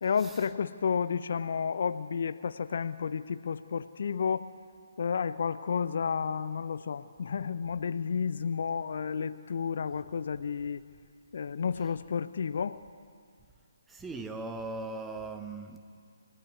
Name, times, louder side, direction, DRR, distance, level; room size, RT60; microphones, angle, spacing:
voice 1, 0.0-4.5 5.0-10.8 11.3-12.8, left 6 dB, 50° left, 0.7 m, -31 dB
voice 2, 13.9-15.8, right 3 dB, 5° right, 1.2 m, -39 dB
28.5 x 18.5 x 9.5 m
figure-of-eight pair, 135°, 0 cm